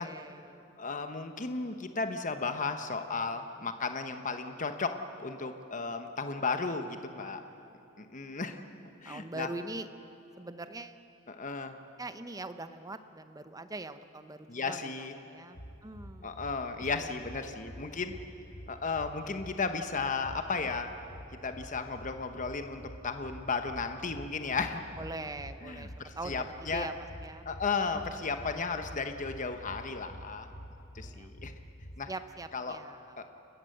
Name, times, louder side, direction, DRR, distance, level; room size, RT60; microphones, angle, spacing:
voice 1, 0.0-0.6 3.6-3.7 7.2-7.7 9.0-9.9 10.4-11.0 12.0-14.9 15.2-16.3 17.0-17.1 17.4-17.5 17.8-18.0 25.0-27.5 27.9-28.2 31.0-31.3 32.1-33.2, right 2 dB, 20° right, 10 dB, 0.8 m, -43 dB
voice 2, 0.8-7.4 8.0-8.6 9.0-9.5 11.3-11.8 14.5-15.1 16.2-18.1 18.7-20.9 21.4-24.8 25.6-26.9 27.4-30.5 30.9-31.5 32.0-32.1 32.5-32.8 33.2-33.3, left 4 dB, 40° left, 7 dB, 1.0 m, -34 dB
sound 1, 15.5-31.9, equal, 75° left, 2.7 m, -48 dB
30.0 x 14.5 x 7.9 m, 2.8 s
head